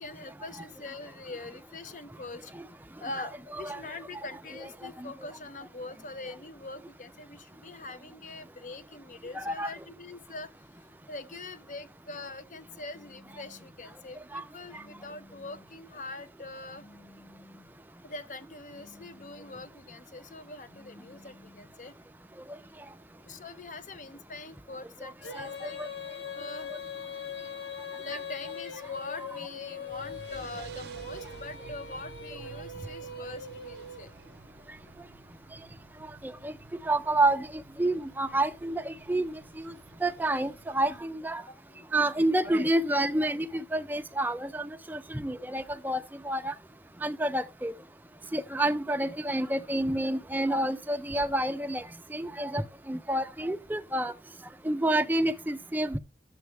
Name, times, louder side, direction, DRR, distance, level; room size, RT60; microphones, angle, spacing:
voice 1, 0.0-2.7 3.0-17.0 18.0-21.9 23.2-25.8 26.3-26.8 27.2-34.1 34.8-34.9 41.5-41.9 45.4-45.5 48.4-48.5, left 2 dB, 45° left, 0.6 m, -43 dB
voice 2, 9.3-9.7 14.3-14.4 25.0-25.5 25.8-25.9 36.2-36.5 36.8-39.7 40.0-41.4 41.9-46.5 47.0-47.7 48.3-54.1 54.6-56.0, right 1 dB, 10° right, 0.4 m, -29 dB
Telephone, 12.9-13.7 14.7-15.7 16.7-17.7 18.7-19.7 20.7-21.7, left 2 dB, 70° left, 1.8 m, -55 dB
Female singing, 25.2-34.4, left 4 dB, 85° left, 1.1 m, -41 dB
sound 1, 29.9-41.0, right 3 dB, 80° right, 0.7 m, -51 dB
10.5 x 7.1 x 3.4 m
head